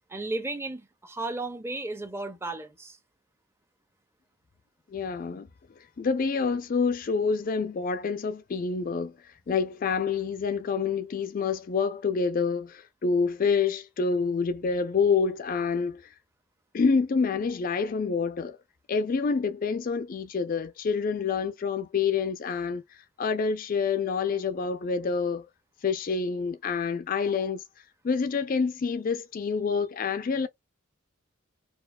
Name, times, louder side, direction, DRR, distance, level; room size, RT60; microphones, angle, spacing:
voice 1, 0.1-3.0, right 2 dB, 10° right, 0.5 m, -34 dB
voice 2, 4.9-5.5 6.0-16.1 16.7-18.6 18.9-22.8 23.2-25.5 25.8-27.6 28.0-30.5, left 5 dB, 40° left, 0.3 m, -27 dB
4.4 x 2.3 x 2.2 m
head